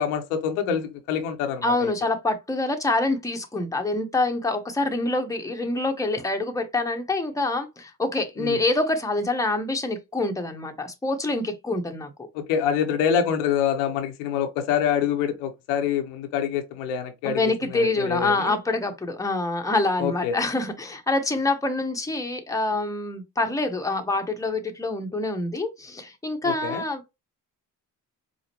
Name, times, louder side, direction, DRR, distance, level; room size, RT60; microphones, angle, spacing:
voice 1, 0.0-1.9 8.4-8.6 12.3-18.6 20.0-20.3 26.4-26.8, left 8 dB, 80° left, 0.8 m, -26 dB
voice 2, 1.6-12.1 17.2-27.1, left 2 dB, 5° left, 0.9 m, -26 dB
4.9 x 2.1 x 2.9 m
hypercardioid pair, 50°, 45 cm